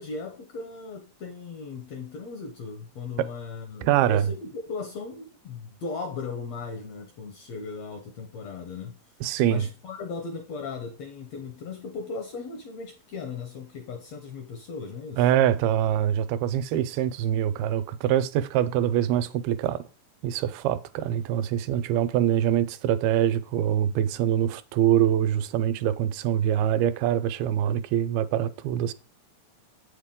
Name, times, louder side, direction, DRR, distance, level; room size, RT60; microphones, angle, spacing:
voice 1, 0.0-9.0 9.4-15.2, left 4 dB, 80° left, 1.5 m, -37 dB
voice 2, 3.8-4.3 9.2-9.7 15.2-19.8 20.2-28.9, right 11 dB, 85° right, 2.5 m, -24 dB
8.1 x 7.1 x 3.6 m
omnidirectional pair, 4.3 m